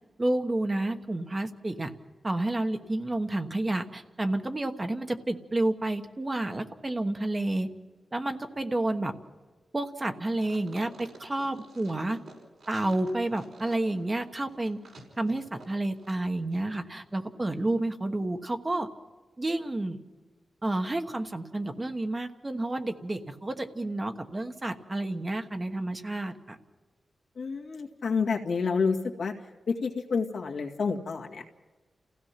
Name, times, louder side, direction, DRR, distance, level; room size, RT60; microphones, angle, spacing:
voice 1, 0.2-1.9 2.2-7.7 8.1-9.1 9.7-12.2 12.7-14.8 15.2-18.9 19.4-20.0 20.6-26.6, right 2 dB, 25° right, 6 dB, 1.2 m, -30 dB
sound 1, 10.3-16.2 16.5-16.6, right 3 dB, 85° right, 5.2 m, -50 dB
voice 2, 27.4-29.3 29.7-31.4, left 5 dB, 75° left, 1 dB, 2.0 m, -29 dB
29.5 x 16.5 x 5.9 m, 1.3 s
wide cardioid pair, 130°, 0 cm